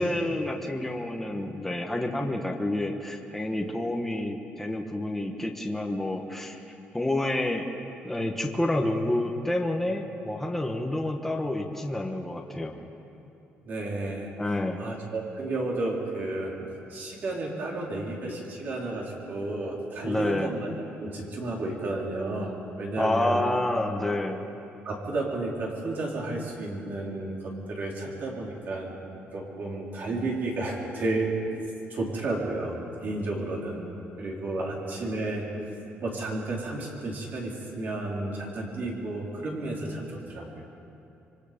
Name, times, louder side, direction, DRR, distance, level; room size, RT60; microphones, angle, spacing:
voice 1, 0.0-6.6 6.9-7.6 8.0-12.7 14.4-14.8 20.0-20.5 23.0-24.4 34.6-34.7, left 1 dB, 5° left, 2 dB, 1.2 m, -29 dB
voice 2, 13.6-14.3 14.8-16.5 16.9-20.6 21.0-23.4 24.8-28.9 29.3-31.3 31.9-33.8 34.2-35.5 36.0-40.6, right 2 dB, 45° right, -2 dB, 3.9 m, -32 dB
26.5 x 24.0 x 5.2 m, 2.8 s
cardioid pair, 165°, 4 cm